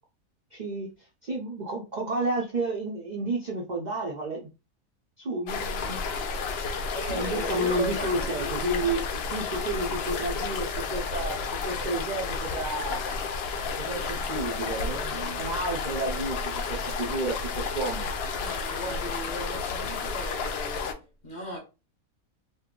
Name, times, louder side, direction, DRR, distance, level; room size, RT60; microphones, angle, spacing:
voice 1, 0.5-0.9 1.2-4.5 5.2-6.0 7.1-13.0 13.8-18.1, right 2 dB, 60° right, 0.4 m, -31 dB
sound 1, 5.5-20.9, left 4 dB, 70° left, 0.6 m, -31 dB
voice 2, 6.9-8.8 18.2-21.6, equal, 35° left, 1.0 m, -37 dB
2.7 x 2.1 x 3.6 m
omnidirectional pair, 1.5 m